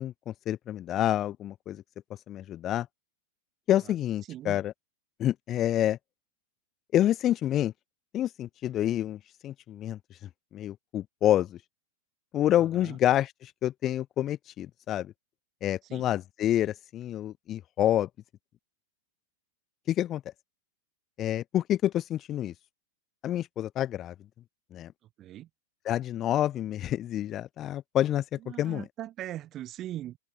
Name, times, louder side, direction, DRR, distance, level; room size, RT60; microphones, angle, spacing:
voice 1, 0.0-1.8 2.3-2.9 3.7-4.7 5.2-6.0 6.9-7.7 8.1-10.0 10.5-11.6 12.3-15.1 15.6-18.1 19.9-20.2 21.2-22.5 23.2-24.1 24.7-24.9 25.8-28.2 28.6-28.8, left 12 dB, 35° left, 0.4 m, -28 dB
voice 2, 4.3-4.6 12.7-13.0 15.9-16.1 25.2-25.5 28.4-30.2, right 13 dB, 35° right, 1.2 m, -40 dB
hypercardioid pair, 105°, 0 cm